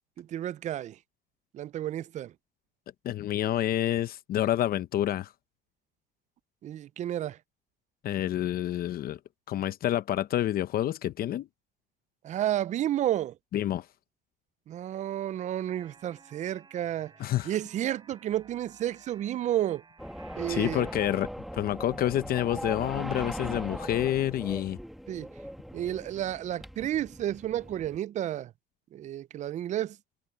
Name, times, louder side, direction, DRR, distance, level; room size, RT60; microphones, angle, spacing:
voice 1, 0.2-1.0 1.5-2.3 6.6-7.4 12.2-13.3 14.7-17.1 17.4-19.8 20.4-20.9 25.1-25.3 25.7-28.5 28.9-30.0, right 12 dB, 45° right, 0.4 m, -31 dB
voice 2, 3.0-5.3 8.0-9.2 9.5-11.5 13.5-13.9 17.2-17.5 20.5-24.8, left 12 dB, 60° left, 0.8 m, -28 dB
sound 1, 15.7-21.3, right 4 dB, 25° right, 5.9 m, -56 dB
sound 2, 20.0-28.0, equal, ahead, 2.2 m, -39 dB
cardioid pair, 110°, 17 cm